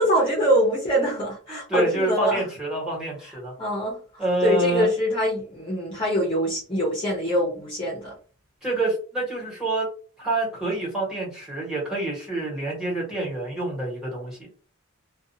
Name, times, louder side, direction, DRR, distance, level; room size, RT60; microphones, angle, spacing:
voice 1, 0.0-2.4 3.6-4.0 4.4-8.1, equal, 25° left, -5 dB, 0.7 m, -24 dB
voice 2, 1.5-3.5 4.2-4.9 8.6-9.9 10.2-14.4, right 2 dB, 5° right, -5 dB, 1.2 m, -27 dB
2.5 x 2.3 x 2.7 m, 0.39 s
head